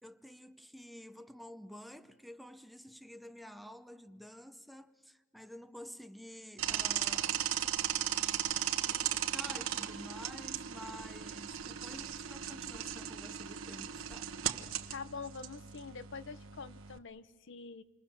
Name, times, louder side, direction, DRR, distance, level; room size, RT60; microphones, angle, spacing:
voice 1, 0.0-7.6 8.0-8.2 8.5-14.3, equal, ahead, 0.7 m, -50 dB
sound 1, 6.6-17.0, right 10 dB, 90° right, 1.2 m, -37 dB
voice 2, 14.9-17.8, left 4 dB, 65° left, 0.8 m, -45 dB
28.5 x 21.5 x 7.3 m
head